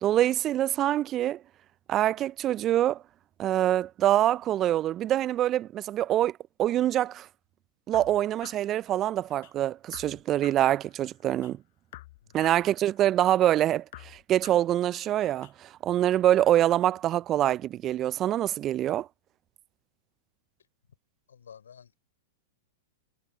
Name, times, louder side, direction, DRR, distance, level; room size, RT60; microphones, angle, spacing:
voice 1, 0.0-1.4 1.9-3.0 3.4-6.3 6.6-7.3 7.9-11.6 12.3-19.1, right 12 dB, 30° right, 0.6 m, -25 dB
sound 1, 7.9-9.5 9.9-11.5 11.9-13.5 13.9-15.5, left 18 dB, 55° left, 5.2 m, -50 dB
voice 2, 21.3-22.0, left 7 dB, 75° left, 5.6 m, -51 dB
hypercardioid pair, 105°, 0 cm